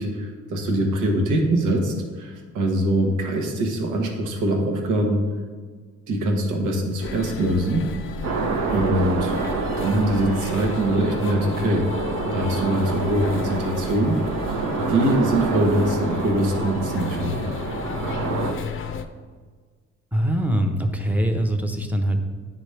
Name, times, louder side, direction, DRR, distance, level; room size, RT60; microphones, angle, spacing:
voice 1, 0.0-5.3 6.1-7.9 8.7-9.3 9.8-14.2 14.5-14.6 14.9-17.4, right 1 dB, 85° right, 2 dB, 1.1 m, -23 dB
sound 1, 7.0-19.1, left 5 dB, 40° left, 0.5 m, -33 dB
sound 2, 8.2-18.5, right 4 dB, 65° right, 0.9 m, -28 dB
voice 2, 20.1-22.2, right 1 dB, 5° right, 4 dB, 0.8 m, -23 dB
9.7 x 4.0 x 3.3 m, 1.5 s
cardioid pair, 90°, 30 cm